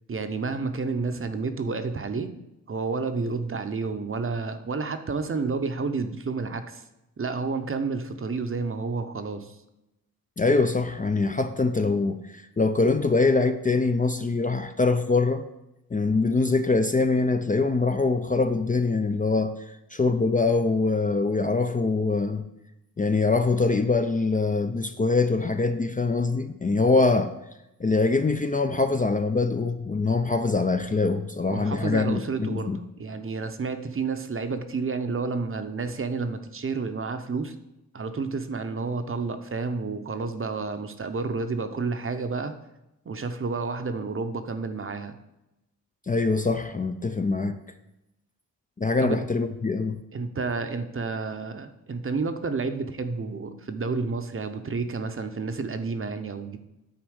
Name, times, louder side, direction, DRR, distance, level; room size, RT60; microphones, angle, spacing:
voice 1, 0.1-2.3 2.7-6.8 7.2-9.6 31.5-37.5 37.9-42.5 43.1-45.1 49.0-49.2 50.1-56.6, right 4 dB, 40° right, 8 dB, 0.7 m, -30 dB
voice 2, 10.4-15.5 15.9-19.5 19.9-22.4 23.0-27.3 27.8-32.8 46.1-47.6 48.8-50.0, left 3 dB, 25° left, 8 dB, 0.4 m, -23 dB
9.4 x 4.3 x 6.4 m, 0.92 s
wide cardioid pair, 110°, 34 cm